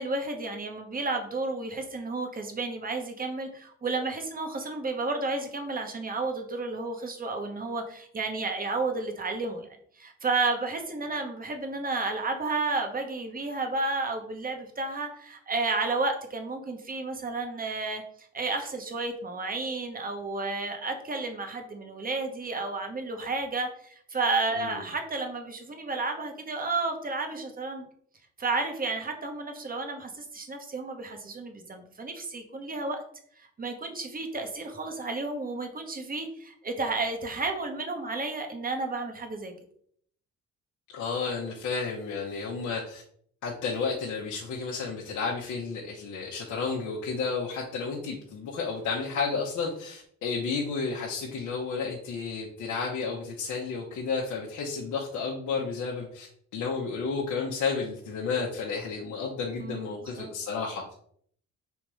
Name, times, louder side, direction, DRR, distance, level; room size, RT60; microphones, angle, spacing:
voice 1, 0.0-9.7 10.0-18.0 18.3-27.9 28.4-33.0 33.4-39.5 59.6-60.3, right 3 dB, 30° right, 5 dB, 1.0 m, -32 dB
voice 2, 40.9-43.0 43.4-56.3 56.5-60.9, left 5 dB, 70° left, -3 dB, 0.9 m, -32 dB
3.6 x 2.9 x 4.8 m, 0.62 s
cardioid pair, 90°, 30 cm